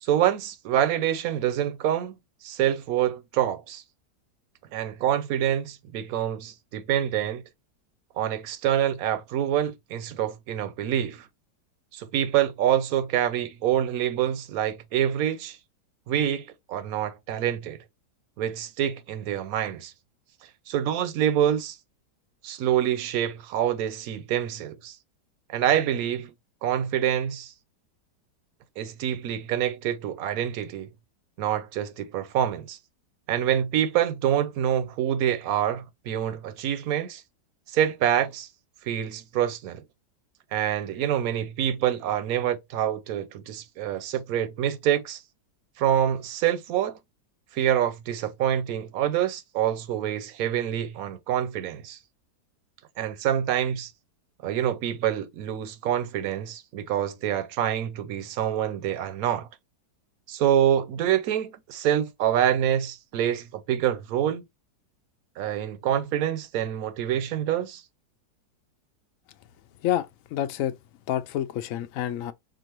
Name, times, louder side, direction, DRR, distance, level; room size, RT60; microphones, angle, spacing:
voice 1, 0.0-2.1 2.4-3.8 4.7-7.4 8.2-11.3 11.9-15.6 16.1-17.8 18.4-19.9 20.7-21.8 22.4-25.0 25.5-26.3 26.6-27.5 28.8-30.9 31.4-32.8 33.3-37.2 37.7-38.5 38.8-39.8 40.5-45.2 45.8-47.0 47.5-52.0 53.0-53.9 54.4-59.5 60.3-64.4 65.4-67.8, right 10 dB, 70° right, 1.0 m, -26 dB
voice 2, 69.8-70.7 71.1-72.3, left 11 dB, 70° left, 0.8 m, -28 dB
5.8 x 2.5 x 2.9 m
omnidirectional pair, 1.8 m